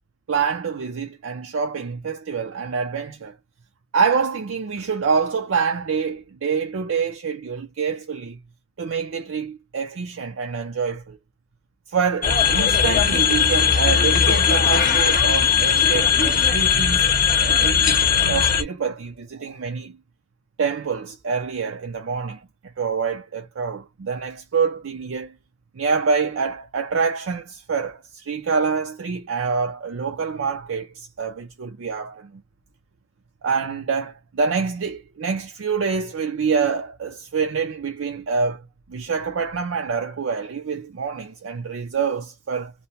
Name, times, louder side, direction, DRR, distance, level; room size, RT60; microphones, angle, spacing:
voice 1, 0.3-3.4 3.9-8.4 8.8-11.2 11.9-17.1 17.4-20.0 20.6-22.5 22.8-25.3 25.7-32.4 33.4-38.6 38.9-42.7, right 5 dB, 65° right, 0.5 m, -26 dB
sound 1, 12.2-18.6, left 7 dB, 40° left, 0.7 m, -18 dB
2.7 x 2.1 x 3.0 m
head